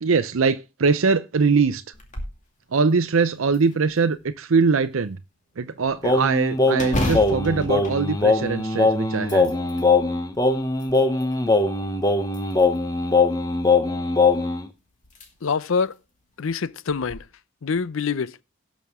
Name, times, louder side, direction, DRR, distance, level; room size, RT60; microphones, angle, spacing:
voice 1, 0.0-1.8 2.7-5.2 5.6-9.5, right 4 dB, 75° right, 0.6 m, -22 dB
sound 1, 1.9-2.4 2.9-3.0 3.5-4.3 6.7-8.7 9.1-9.9 10.5-11.4 12.3-12.9 14.4-14.5 15.0-15.3 15.7-15.8 16.9-17.2, left 1 dB, 35° left, 2.4 m, -32 dB
Singing, 6.0-14.6, left 3 dB, 15° left, 0.9 m, -21 dB
voice 2, 15.4-15.9 16.4-17.2 17.6-18.3, left 5 dB, 70° left, 0.5 m, -25 dB
18.0 x 6.2 x 3.6 m
head